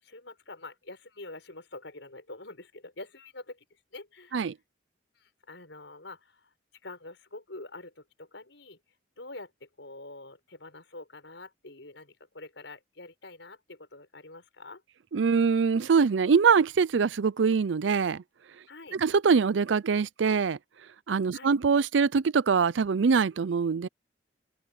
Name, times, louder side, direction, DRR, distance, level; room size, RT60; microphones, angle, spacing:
voice 1, 0.0-4.4 5.2-6.5 6.8-8.8 9.2-14.8 18.7-19.0 21.3-21.5, left 2 dB, 80° left, 5.4 m, -46 dB
voice 2, 15.1-18.2 18.9-20.6 21.1-23.9, right 5 dB, 85° right, 0.5 m, -23 dB
head